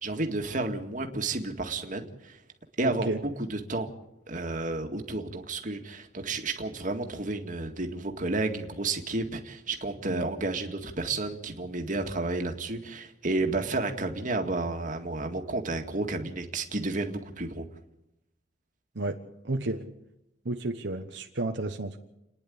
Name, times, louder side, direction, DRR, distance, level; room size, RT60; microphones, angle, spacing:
voice 1, 0.0-2.4 2.8-3.9 4.3-17.6, right 2 dB, 45° right, 5 dB, 2.0 m, -31 dB
voice 2, 2.8-3.2 10.0-10.3 18.9-19.2 19.4-19.9 20.4-22.0, right 2 dB, 75° right, 4 dB, 1.2 m, -32 dB
30.0 x 10.5 x 8.6 m, 0.87 s
head